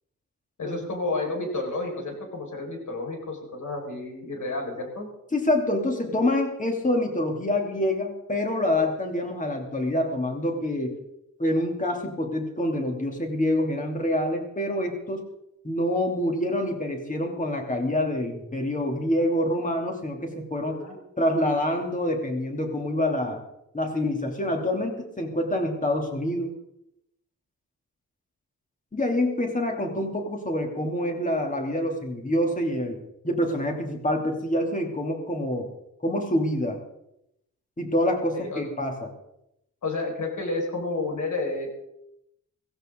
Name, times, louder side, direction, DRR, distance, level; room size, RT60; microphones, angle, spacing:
voice 1, 0.6-5.1 20.6-21.0 38.3-38.6 39.8-41.7, left 2 dB, 65° left, 0 dB, 5.5 m, -31 dB
voice 2, 5.3-11.0 11.4-15.2 15.6-20.8 21.2-23.4 23.7-26.5 28.9-33.0 33.2-35.7 36.0-36.8 37.8-39.1, left 1 dB, 25° left, 2 dB, 3.1 m, -26 dB
16.5 x 16.5 x 3.9 m, 0.80 s
wide cardioid pair, 125°, 32 cm